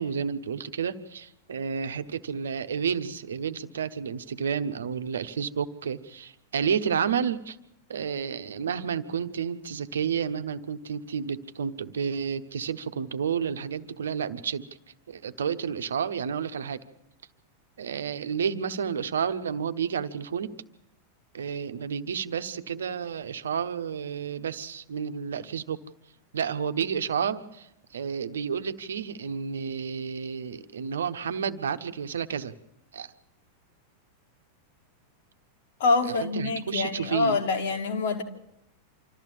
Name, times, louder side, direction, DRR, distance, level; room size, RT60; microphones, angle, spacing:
voice 1, 0.0-7.6 7.9-14.7 15.1-16.8 17.8-20.5 21.3-25.8 26.3-32.5 32.9-33.1 36.0-37.4, right 7 dB, 65° right, 1.1 m, -31 dB
voice 2, 35.8-38.2, left 4 dB, 55° left, 2.3 m, -26 dB
26.0 x 14.0 x 7.5 m
figure-of-eight pair, 90°, 0 cm